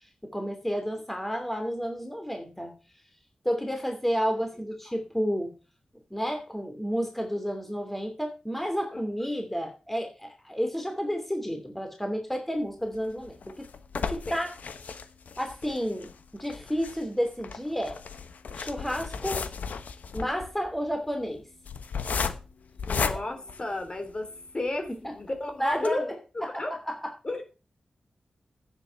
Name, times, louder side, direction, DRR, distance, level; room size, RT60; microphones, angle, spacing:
voice 1, 0.2-2.7 3.4-5.5 6.1-13.7 13.9-14.5 15.4-18.0 18.5-19.4 20.1-21.4 23.0-23.1 24.9-25.1 25.6-26.1 26.4-26.6, equal, 5° left, 4 dB, 2.8 m, -31 dB
sound 1, 12.9-24.3 24.9-25.0 25.2-25.3 25.7-25.9, left 5 dB, 85° left, 1.1 m, -35 dB
voice 2, 22.9-26.0 26.6-26.7 27.2-27.4, left 2 dB, 35° left, 6 dB, 3.6 m, -32 dB
9.8 x 7.7 x 5.7 m, 0.33 s
wide cardioid pair, 85°, 3 cm